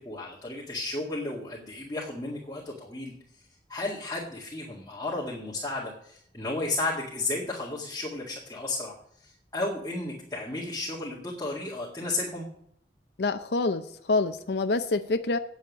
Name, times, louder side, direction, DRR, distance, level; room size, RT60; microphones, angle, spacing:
voice 1, 0.0-3.1 3.7-8.9 9.2-12.5, left 2 dB, 20° left, -6 dB, 1.9 m, -33 dB
voice 2, 13.2-13.8 14.1-15.4, left 3 dB, 75° left, 7 dB, 0.6 m, -26 dB
9.3 x 7.2 x 8.2 m, 0.67 s
head